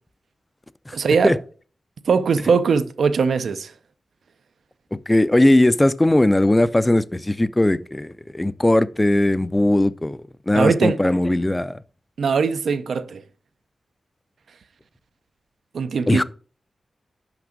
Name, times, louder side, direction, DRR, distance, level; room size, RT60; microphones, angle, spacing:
voice 1, 0.9-1.3 2.1-3.7 10.5-11.0 12.2-13.2 15.7-16.2, right 5 dB, 80° right, 0.5 m, -20 dB
voice 2, 4.9-10.2 10.5-11.8 16.1-16.2, left 1 dB, 10° left, 0.3 m, -18 dB
6.0 x 5.9 x 5.2 m
wide cardioid pair, 155°, 0 cm